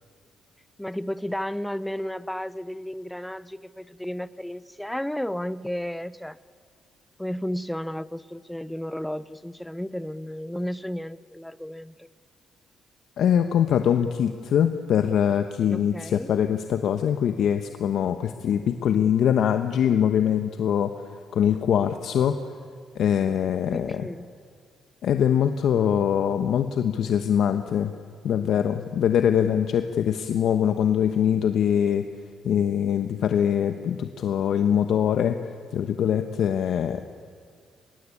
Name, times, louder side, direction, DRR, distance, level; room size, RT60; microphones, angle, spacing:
voice 1, 0.8-6.4 7.2-12.1 15.7-16.3 23.7-24.3, equal, 5° left, 16 dB, 0.8 m, -33 dB
voice 2, 13.2-20.9 21.3-22.4 22.9-24.1 25.0-27.9 28.2-32.0 32.4-35.4 35.7-37.0, left 9 dB, 70° left, 7 dB, 1.1 m, -23 dB
23.5 x 22.0 x 8.5 m, 2.1 s
cardioid pair, 90°, 0 cm